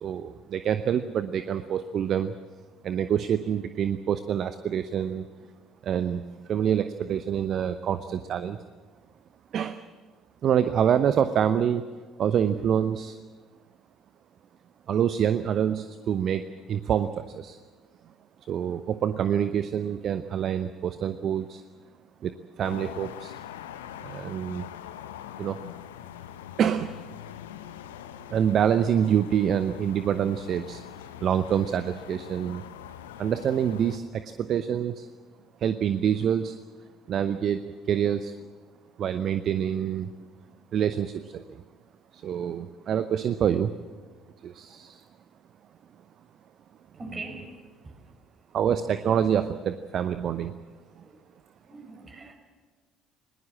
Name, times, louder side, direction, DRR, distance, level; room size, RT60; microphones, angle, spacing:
voice 1, 0.0-2.3 2.8-5.3 5.8-6.2 6.5-8.6 9.5-9.8 10.4-11.8 12.2-13.2 14.9-17.6 18.5-21.6 22.2-23.4 24.0-24.6 25.4-25.6 26.6-26.9 28.3-30.8 31.2-32.6 33.2-35.1 35.6-36.6 37.1-38.3 39.0-40.1 40.7-41.6 42.1-43.7 44.4-45.0 48.5-50.6, right 9 dB, 50° right, 12 dB, 0.8 m, -26 dB
sound 1, 22.6-34.0, left 11 dB, 75° left, 0.9 m, -43 dB
voice 2, 46.9-48.1 50.0-50.2 51.0-51.2 51.6-52.3, right 2 dB, 30° right, 4 dB, 5.7 m, -43 dB
21.0 x 19.5 x 7.5 m, 1.4 s
figure-of-eight pair, 55°, 0 cm